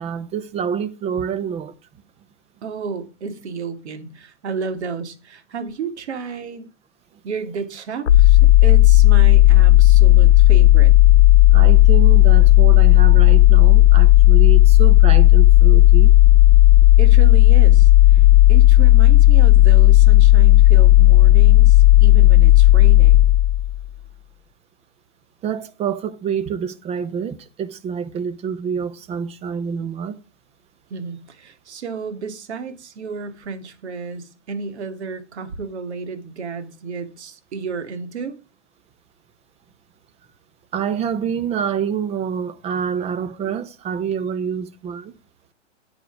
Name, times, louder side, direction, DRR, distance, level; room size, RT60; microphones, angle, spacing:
voice 1, 0.0-1.7 11.5-16.1 25.4-30.2 40.7-45.1, right 7 dB, 15° right, 0.9 m, -27 dB
voice 2, 2.6-6.7 7.2-10.9 17.0-23.3 30.9-38.4, right 5 dB, 60° right, 2.7 m, -32 dB
sound 1, 8.1-23.8, left 15 dB, 60° left, 1.1 m, -11 dB
9.9 x 9.0 x 4.8 m
hypercardioid pair, 130°, 37 cm